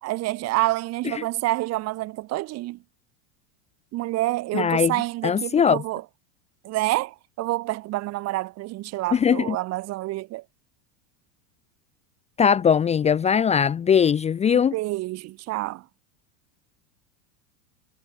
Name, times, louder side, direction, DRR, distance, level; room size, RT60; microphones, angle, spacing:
voice 1, 0.0-2.8 3.9-6.0 6.6-10.4 14.7-15.8, right 18 dB, 40° right, 2.1 m, -28 dB
voice 2, 4.5-4.9 5.2-5.8 9.1-9.6 12.4-14.7, left 7 dB, 15° left, 0.8 m, -20 dB
supercardioid pair, 145°, 39 cm